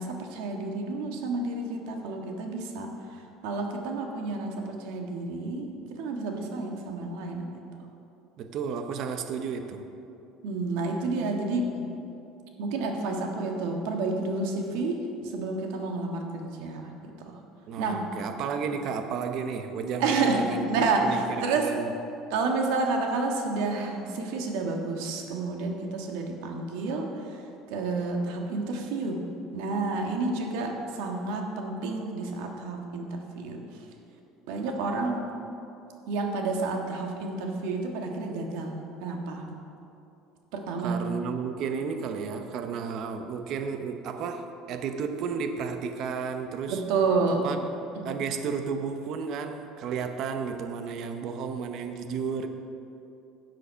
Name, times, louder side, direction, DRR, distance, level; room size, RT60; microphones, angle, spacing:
voice 1, 0.0-2.9 3.4-7.6 10.4-11.9 12.6-15.1 15.3-16.9 17.8-18.1 20.0-21.7 22.3-27.1 27.7-33.6 34.5-35.3 36.1-38.8 39.0-39.4 40.5-41.1 46.7-47.5 48.0-48.1, right 3 dB, 75° right, 2 dB, 1.5 m, -30 dB
voice 2, 8.4-9.8 17.7-20.6 21.0-21.9 40.8-46.8 47.3-47.6 48.0-52.5, right 6 dB, 45° right, 7 dB, 0.7 m, -32 dB
11.5 x 7.7 x 5.6 m, 2.8 s
cardioid pair, 165°, 0 cm